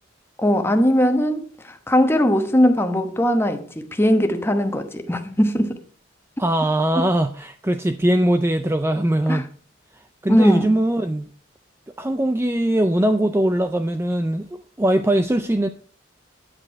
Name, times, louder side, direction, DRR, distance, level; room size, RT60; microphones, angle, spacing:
voice 1, 0.4-5.8 9.3-9.4 10.3-10.7, equal, 10° left, 1.0 m, -19 dB
voice 2, 6.4-9.5 9.9-11.3 12.0-15.7, right 1 dB, 10° right, 0.4 m, -21 dB
9.9 x 8.8 x 4.5 m
head